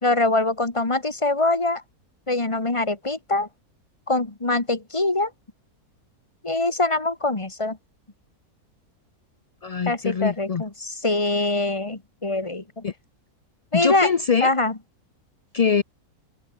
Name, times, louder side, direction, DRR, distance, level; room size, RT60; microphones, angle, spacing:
voice 1, 0.0-1.8 2.3-3.5 4.1-5.3 6.4-7.8 9.9-12.8 13.7-14.1 14.4-14.7, left 2 dB, 20° left, 1.6 m, -23 dB
voice 2, 9.6-10.6 12.8-12.9 13.7-14.5 15.5-15.8, left 6 dB, 50° left, 0.4 m, -23 dB
omnidirectional pair, 1.6 m